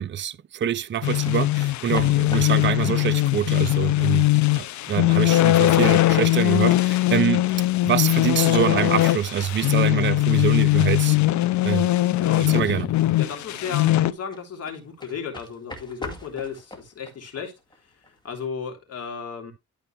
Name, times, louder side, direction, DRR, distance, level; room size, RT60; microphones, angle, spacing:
voice 1, 0.0-4.2 4.6-7.4 7.8-11.2 11.6-11.9 12.5-12.9, right 9 dB, 40° right, 0.6 m, -25 dB
sound 1, 0.6-18.5, left 1 dB, 15° left, 2.2 m, -46 dB
sound 2, 1.0-14.1, left 16 dB, 70° left, 0.6 m, -20 dB
voice 2, 12.2-12.8 13.2-17.6 18.0-19.5, left 6 dB, 55° left, 3.3 m, -34 dB
12.5 x 4.5 x 3.3 m
cardioid pair, 90°, 30 cm